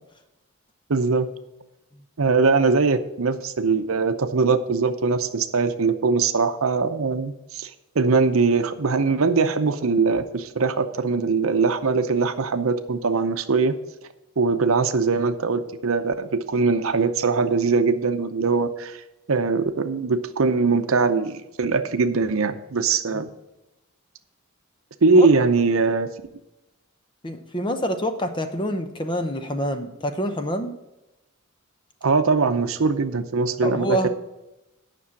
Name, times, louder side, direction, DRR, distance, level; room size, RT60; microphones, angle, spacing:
voice 1, 0.9-1.3 2.2-13.8 14.4-19.0 19.3-23.3 25.0-26.1 32.0-34.1, right 4 dB, 75° right, 9 dB, 0.7 m, -21 dB
voice 2, 27.2-30.8 33.6-34.1, equal, 20° left, 7 dB, 0.8 m, -26 dB
10.0 x 6.1 x 6.0 m, 0.95 s
head